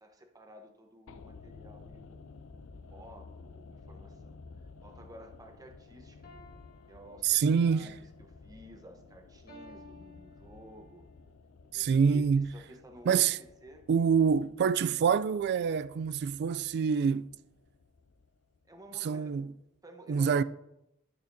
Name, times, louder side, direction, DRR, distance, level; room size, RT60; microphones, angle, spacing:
voice 1, 0.0-2.1 2.9-4.4 4.8-6.3 6.9-11.0 11.7-13.9 18.7-19.4 19.8-20.4, equal, 15° right, 0.9 m, -53 dB
sound 1, 1.1-19.3 19.5-19.6, left 4 dB, 70° left, 0.5 m, -54 dB
sound 2, 6.2-7.8 9.5-11.0, left 2 dB, 50° left, 1.6 m, -54 dB
voice 2, 7.2-7.9 11.7-12.5 13.1-13.4 13.9-17.3 19.0-19.5 20.1-20.4, right 6 dB, 50° right, 0.3 m, -26 dB
12.0 x 6.5 x 2.7 m
head